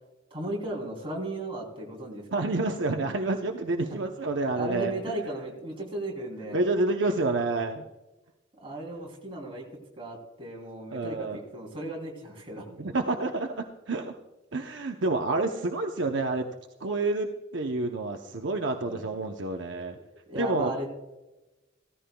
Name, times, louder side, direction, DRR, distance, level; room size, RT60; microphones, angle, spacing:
voice 1, 0.3-2.4 4.5-6.6 8.5-9.6 10.0-12.7 18.9-19.0 20.1-20.9, right 1 dB, 25° right, 0 dB, 3.1 m, -36 dB
voice 2, 2.3-5.2 6.5-7.8 10.9-11.4 12.8-14.1 14.5-16.5 16.8-20.0 20.3-20.7, right 2 dB, 65° right, 4 dB, 0.8 m, -29 dB
16.5 x 14.0 x 2.3 m, 1.0 s
head